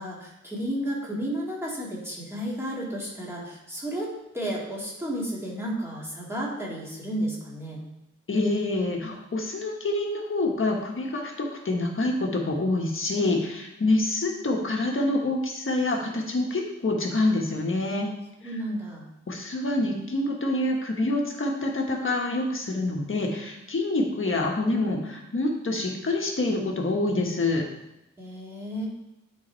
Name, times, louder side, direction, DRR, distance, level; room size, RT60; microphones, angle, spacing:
voice 1, 0.0-7.9 18.4-19.1 28.2-28.9, right 1 dB, 10° right, -5 dB, 1.9 m, -32 dB
voice 2, 8.3-18.1 19.3-27.6, left 2 dB, 40° left, 0 dB, 1.4 m, -26 dB
10.0 x 4.1 x 4.4 m, 0.91 s
wide cardioid pair, 170°, 30 cm